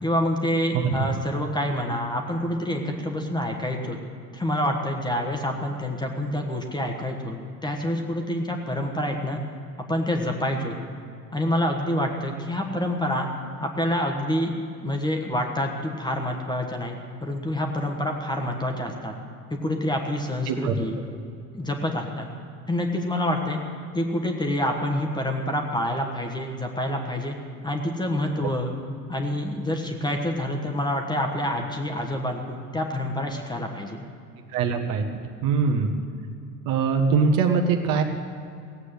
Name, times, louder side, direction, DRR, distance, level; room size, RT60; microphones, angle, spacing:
voice 1, 0.0-4.0 4.3-9.4 9.9-10.8 11.3-13.3 13.6-19.1 19.5-20.9 21.5-22.3 22.7-23.6 23.9-27.4 27.6-28.7 29.1-34.0, left 1 dB, 10° left, 3 dB, 1.4 m, -27 dB
voice 2, 34.5-35.1 35.4-35.9 36.6-38.0, right 5 dB, 45° right, 3 dB, 1.4 m, -22 dB
17.5 x 8.2 x 7.9 m, 2.4 s
figure-of-eight pair, 80°, 48 cm